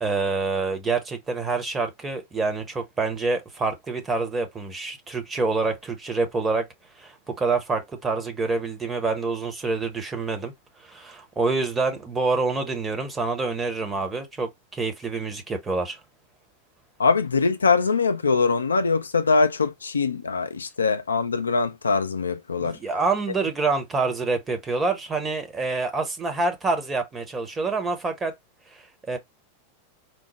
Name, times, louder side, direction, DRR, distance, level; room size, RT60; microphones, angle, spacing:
voice 1, 0.0-6.7 7.0-10.5 10.8-16.0 22.6-28.3 28.7-29.2, right 3 dB, 15° right, 0.9 m, -27 dB
voice 2, 17.0-22.8, left 4 dB, 75° left, 0.4 m, -22 dB
4.5 x 2.0 x 3.0 m
figure-of-eight pair, 90°, 0 cm